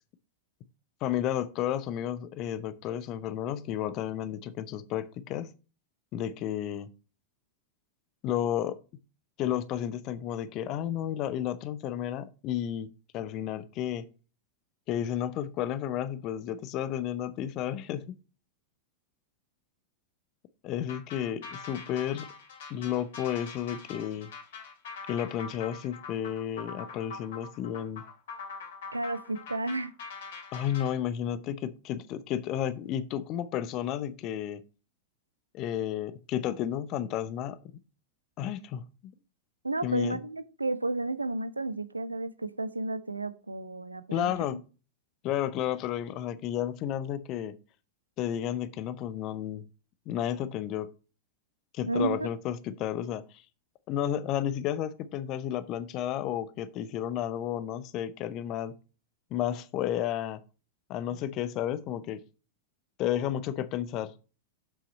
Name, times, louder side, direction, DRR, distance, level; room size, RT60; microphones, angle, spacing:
voice 1, 1.0-5.5 6.1-6.9 8.2-8.8 9.4-12.9 13.1-14.1 14.9-18.1 20.6-22.3 22.7-24.3 25.1-28.0 30.5-34.6 35.5-37.6 38.4-39.1 39.8-40.2 44.1-44.6 45.2-47.6 48.2-49.7 50.1-50.9 51.7-53.2 53.9-58.7 59.3-60.4 60.9-62.2 63.0-64.1, left 10 dB, 40° left, 0.7 m, -32 dB
sound 1, 20.9-31.0, left 5 dB, 55° left, 2.4 m, -43 dB
voice 2, 28.9-29.9 39.6-44.6 51.9-52.3 61.1-61.2, right 2 dB, 80° right, 0.6 m, -32 dB
7.2 x 5.8 x 4.1 m
figure-of-eight pair, 90°, 0 cm